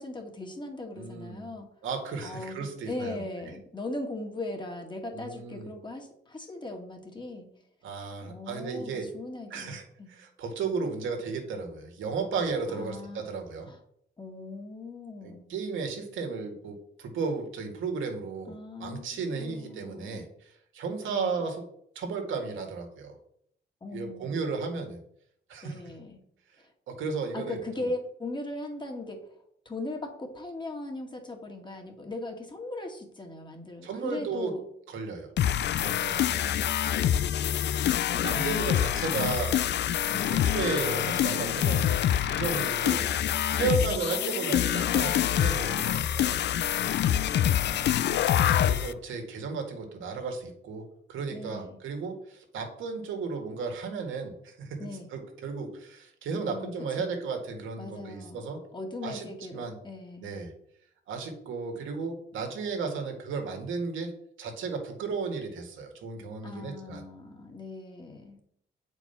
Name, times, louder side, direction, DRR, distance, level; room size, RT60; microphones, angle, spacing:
voice 1, 0.0-1.7 2.2-7.5 8.2-10.1 12.7-13.2 13.7-13.8 14.2-15.5 18.5-20.2 21.1-21.5 23.8-24.7 25.6-26.2 27.3-29.2 29.7-34.6 36.0-36.7 40.1-40.5 43.6-45.1 51.3-51.8 54.8-55.1 56.4-57.2 57.8-58.4 58.7-60.3 66.4-68.4, left 2 dB, 25° left, 2 dB, 2.1 m, -39 dB
voice 2, 0.9-1.5 1.8-3.2 5.1-5.7 7.8-9.1 9.5-9.8 10.1-13.7 15.2-21.6 22.0-23.2 23.9-25.0 25.5-25.8 26.9-27.9 33.8-34.5 34.9-35.3 35.8-36.4 38.1-39.7 40.3-43.1 43.5-46.4 48.3-54.8 55.1-58.6 59.0-59.7 60.2-60.5 61.1-64.1 64.4-67.0, right 4 dB, 80° right, 3 dB, 1.9 m, -34 dB
sound 1, 35.4-48.9, left 11 dB, 60° left, 0.5 m, -26 dB
7.5 x 4.7 x 5.6 m, 0.70 s
cardioid pair, 90°, 20 cm